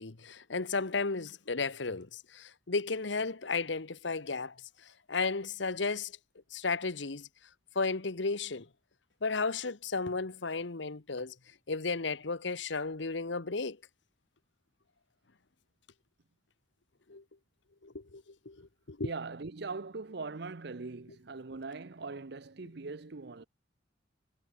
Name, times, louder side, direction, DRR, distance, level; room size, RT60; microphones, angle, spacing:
voice 1, 0.0-4.6 4.8-6.1 6.5-7.3 7.7-8.7 9.2-11.3 11.7-13.8 17.1-17.2 17.8-19.1, left 4 dB, 70° left, 1.2 m, -34 dB
voice 2, 19.0-23.4, right 3 dB, 60° right, 0.8 m, -41 dB
head